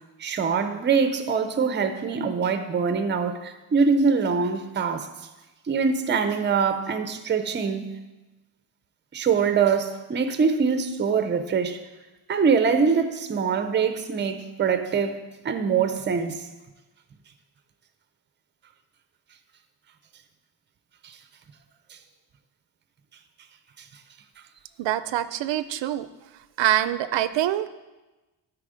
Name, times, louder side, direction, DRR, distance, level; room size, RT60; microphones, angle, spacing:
voice 1, 0.2-5.1 5.7-7.9 9.1-11.8 12.3-16.5, right 5 dB, 25° right, 0.5 m, -24 dB
voice 2, 24.8-26.1 26.6-27.7, right 12 dB, 75° right, 0.5 m, -24 dB
12.0 x 4.8 x 5.0 m
wide cardioid pair, 175°, 44 cm